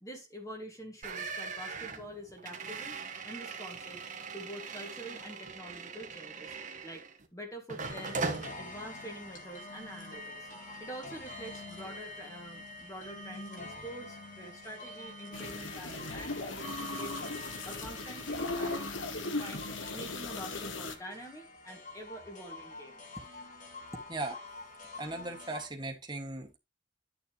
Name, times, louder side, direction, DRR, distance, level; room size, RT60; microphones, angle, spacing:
voice 1, 0.0-3.0 3.2-4.0 4.3-6.6 6.8-7.1 7.3-8.2 8.6-10.5 10.8-17.3 17.6-18.9 19.2-23.0, right 1 dB, 15° left, 2.0 m, -46 dB
sound 1, 1.0-7.3 7.7-8.5, right 4 dB, 40° right, 1.4 m, -40 dB
sound 2, 7.8-25.7, left 2 dB, 40° left, 2.3 m, -47 dB
sound 3, 15.3-21.0, left 2 dB, 75° left, 1.4 m, -37 dB
voice 2, 25.0-26.6, right 2 dB, 20° right, 1.8 m, -38 dB
11.0 x 6.8 x 3.0 m
head